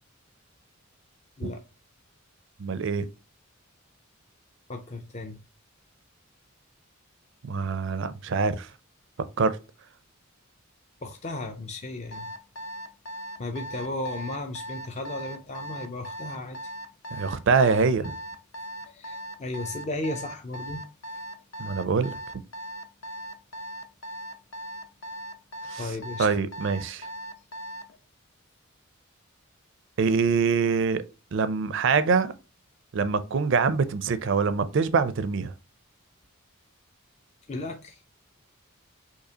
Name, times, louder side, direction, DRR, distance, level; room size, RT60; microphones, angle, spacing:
voice 1, 2.6-3.1 7.4-8.7 9.4-9.6 17.1-18.1 21.6-22.2 25.7-25.8 26.2-27.1 30.0-31.0 31.3-32.3 32.9-35.5, right 5 dB, 60° right, 0.4 m, -24 dB
voice 2, 4.7-5.4 11.0-12.3 13.4-16.7 18.8-20.9 25.8-26.3 37.5-38.0, left 2 dB, 30° left, 0.5 m, -35 dB
Alarm, 12.1-27.9, right 1 dB, 60° left, 0.8 m, -38 dB
6.5 x 2.8 x 2.8 m
head